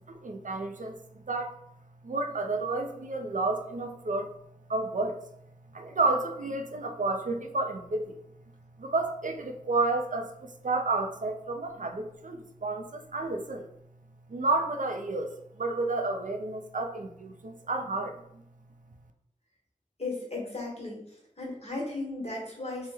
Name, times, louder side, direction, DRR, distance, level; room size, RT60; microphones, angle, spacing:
voice 1, 0.0-1.6 2.0-4.3 4.7-5.2 5.7-8.1 8.8-13.7 14.3-18.4, right 3 dB, 70° right, 4 dB, 0.4 m, -31 dB
voice 2, 20.0-21.0 21.4-22.9, left 2 dB, 50° left, -3 dB, 1.0 m, -35 dB
3.0 x 2.1 x 3.3 m, 0.76 s
wide cardioid pair, 40°, 14 cm